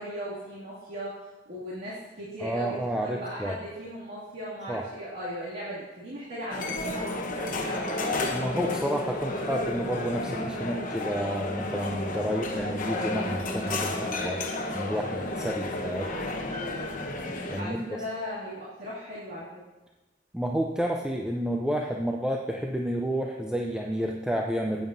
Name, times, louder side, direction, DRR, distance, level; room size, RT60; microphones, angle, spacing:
voice 1, 0.0-8.1 17.5-19.5, equal, 65° right, -10 dB, 2.4 m, -38 dB
voice 2, 2.4-3.6 4.7-4.8 8.3-14.4 14.7-16.1 17.5-17.9 20.3-24.9, equal, 5° right, 0 dB, 0.5 m, -30 dB
sound 1, 6.5-17.6, left 2 dB, 50° left, 1.0 m, -32 dB
14.5 x 9.1 x 2.7 m, 1.1 s
head